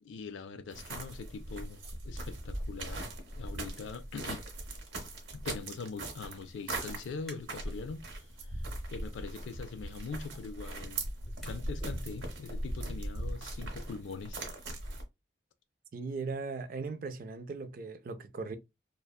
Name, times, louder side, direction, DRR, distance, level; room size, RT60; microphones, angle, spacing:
voice 1, 0.0-3.1 3.4-4.4 5.3-8.0 8.5-8.6 8.9-11.1 11.4-14.5, left 4 dB, 80° left, 0.4 m, -42 dB
sound 1, 0.7-15.0, right 1 dB, 80° right, 0.8 m, -40 dB
sound 2, 7.1-7.8 8.2-12.0, equal, ahead, 0.7 m, -56 dB
voice 2, 15.9-18.6, right 4 dB, 45° right, 0.3 m, -38 dB
2.6 x 2.1 x 2.2 m
head